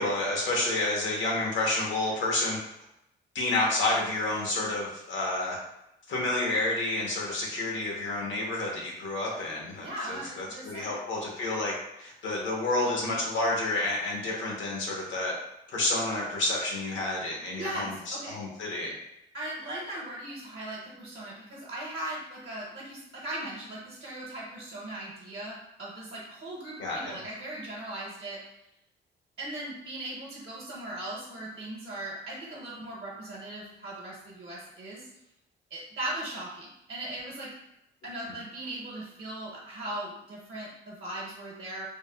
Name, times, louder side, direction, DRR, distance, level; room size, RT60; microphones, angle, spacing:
voice 1, 0.0-2.6 3.3-5.6 6.1-15.4 15.7-18.9 26.8-27.1, left 2 dB, 70° left, -2 dB, 1.0 m, -29 dB
voice 2, 9.8-10.9 17.6-18.4 19.3-28.4 29.4-35.1 35.7-37.5 38.0-41.9, right 1 dB, 60° right, -5 dB, 0.8 m, -38 dB
3.4 x 2.0 x 2.3 m, 0.85 s
cardioid pair, 90°, 20 cm